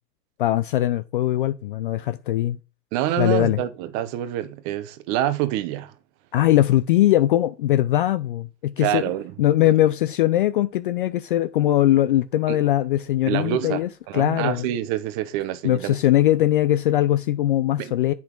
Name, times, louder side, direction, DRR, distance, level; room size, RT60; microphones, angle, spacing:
voice 1, 0.4-2.6 3.2-3.6 6.3-9.0 9.4-14.7 15.6-18.1, left 13 dB, 35° left, 0.4 m, -21 dB
voice 2, 2.9-5.9 8.8-9.3 12.5-12.6 13.3-16.0 17.8-17.9, right 12 dB, 35° right, 1.0 m, -26 dB
7.9 x 5.8 x 4.5 m
hypercardioid pair, 115°, 50 cm